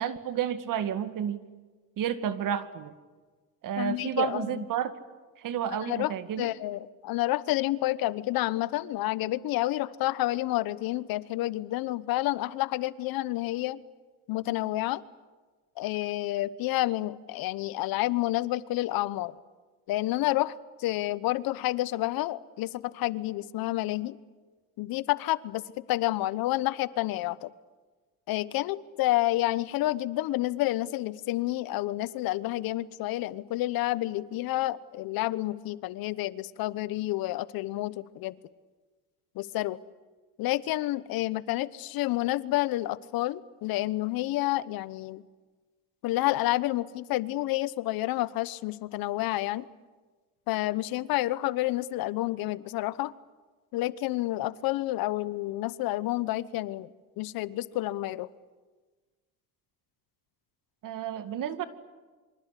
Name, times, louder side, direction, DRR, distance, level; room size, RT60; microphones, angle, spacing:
voice 1, 0.0-1.4 2.0-2.9 3.6-4.9 5.4-6.5 60.8-61.7, right 9 dB, 60° right, 10 dB, 2.2 m, -31 dB
voice 2, 3.8-4.6 5.8-13.8 14.3-15.0 15.8-19.3 19.9-20.5 20.8-24.2 24.8-25.6 25.9-27.5 28.3-38.3 39.3-39.8 40.4-45.2 46.0-49.7 50.5-53.1 53.7-56.9 57.2-58.3, left 16 dB, 70° left, 17 dB, 1.1 m, -29 dB
27.5 x 25.0 x 8.4 m, 1.3 s
cardioid pair, 100°, 36 cm